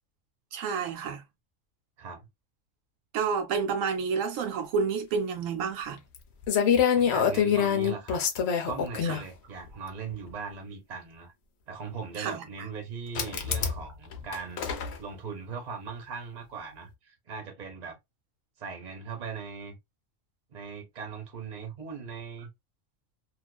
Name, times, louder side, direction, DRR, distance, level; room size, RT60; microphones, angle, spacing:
voice 1, 0.5-1.2 3.1-6.0 9.0-9.2 12.2-12.7, right 6 dB, 80° right, 1.0 m, -30 dB
sound 1, 6.1-6.2 6.5-9.2 10.3-10.4 13.2-13.8 14.1-15.0, left 8 dB, 65° left, 0.8 m, -25 dB
voice 2, 7.0-8.2 8.6-11.3 11.7-14.6 15.0-18.0 18.6-19.8 20.5-22.5, right 5 dB, 40° right, 0.8 m, -39 dB
2.4 x 2.4 x 2.2 m
omnidirectional pair, 1.3 m